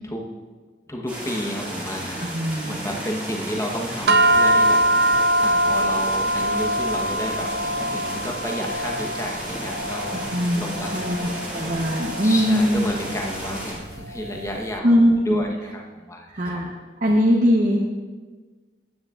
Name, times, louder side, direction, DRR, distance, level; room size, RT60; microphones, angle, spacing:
voice 1, 0.9-2.3 2.6-7.5 7.9-10.2 10.5-14.9 15.2-16.6, equal, 15° left, 0 dB, 1.0 m, -31 dB
sound 1, 1.1-13.7, right 1 dB, 10° right, 2.3 m, -33 dB
voice 2, 2.2-3.0 10.3-12.9 14.8-15.5 16.3-16.7 17.0-17.8, equal, 45° right, -1 dB, 0.8 m, -21 dB
sound 2, 4.1-14.6, right 1 dB, 60° right, 0.4 m, -23 dB
14.0 x 9.5 x 2.5 m, 1.4 s
head